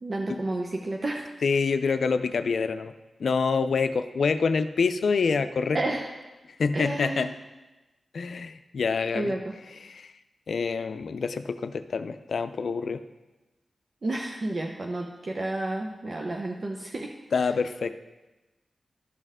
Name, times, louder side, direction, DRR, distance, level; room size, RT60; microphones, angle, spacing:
voice 1, 0.0-1.3 5.7-6.1 6.7-7.3 9.1-9.5 14.0-17.1 17.4-17.5, right 2 dB, 55° right, 1 dB, 0.7 m, -31 dB
voice 2, 1.4-2.9 3.2-5.8 6.6-7.3 8.1-9.3 9.8-10.1 10.5-13.0 17.3-17.9, left 5 dB, 75° left, 11 dB, 0.4 m, -26 dB
12.5 x 5.4 x 3.6 m, 1.1 s
cardioid pair, 40°, 0 cm